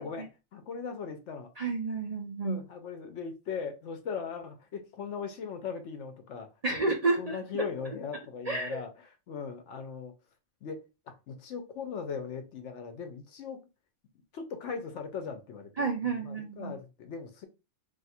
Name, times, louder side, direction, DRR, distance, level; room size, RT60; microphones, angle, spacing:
voice 1, 0.0-1.5 2.4-6.8 7.2-10.1 10.6-10.8 11.3-13.6 14.3-17.5, left 6 dB, 75° left, 1.0 m, -39 dB
voice 2, 1.6-2.6 6.6-7.7 8.5-8.8 15.8-16.7, right 3 dB, 45° right, 0.5 m, -30 dB
2.7 x 2.4 x 4.2 m
omnidirectional pair, 1.2 m